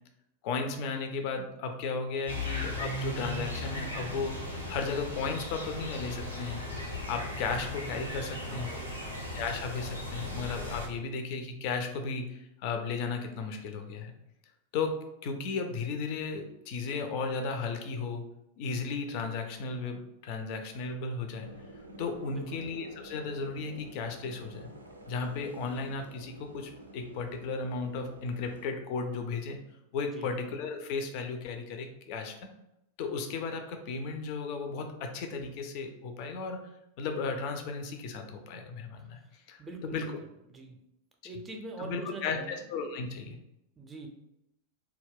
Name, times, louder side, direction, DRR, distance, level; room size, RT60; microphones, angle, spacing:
voice 1, 0.4-4.4 4.7-6.6 7.1-8.7 9.3-14.1 14.7-18.2 18.6-21.5 22.0-24.7 25.1-29.6 29.9-32.3 33.0-36.7 37.0-39.2 39.5-40.1 41.8-43.4, left 4 dB, 45° left, 5 dB, 0.4 m, -35 dB
sound 1, 2.3-10.9, left 2 dB, 85° left, 0.6 m, -37 dB
voice 2, 8.4-9.2 22.3-22.6 30.1-30.3 39.1-39.3 39.6-40.1 40.5-40.8 41.2-42.6 43.8-44.1, right 3 dB, 20° right, 3 dB, 0.4 m, -43 dB
sound 2, 21.3-28.7, right 1 dB, 80° right, 0.3 m, -50 dB
2.2 x 2.1 x 3.4 m, 0.83 s
figure-of-eight pair, 90°, 0 cm